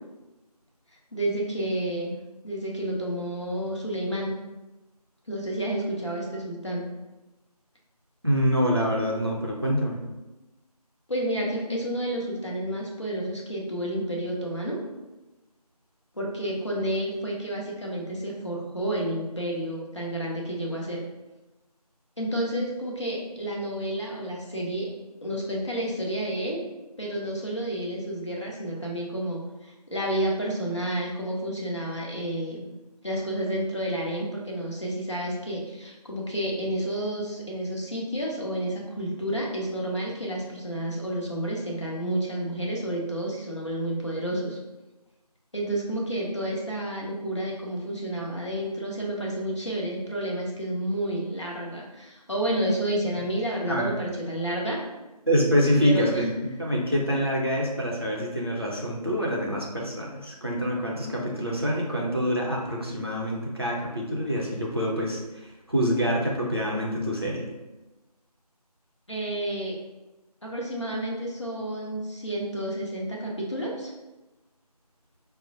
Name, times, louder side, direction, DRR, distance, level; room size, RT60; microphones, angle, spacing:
voice 1, 1.1-2.1 2.4-4.3 5.3-6.8 11.1-14.8 16.1-21.0 22.2-24.9 25.2-26.6 27.0-32.6 33.0-44.6 45.5-54.8 55.8-56.3 69.1-69.8 70.4-73.9, right 1 dB, 45° left, -3 dB, 0.7 m, -30 dB
voice 2, 8.2-10.0 53.7-54.0 55.3-65.2 65.7-67.5, equal, 40° right, -3 dB, 0.6 m, -26 dB
5.0 x 2.0 x 2.6 m, 1.1 s
figure-of-eight pair, 170°, 21 cm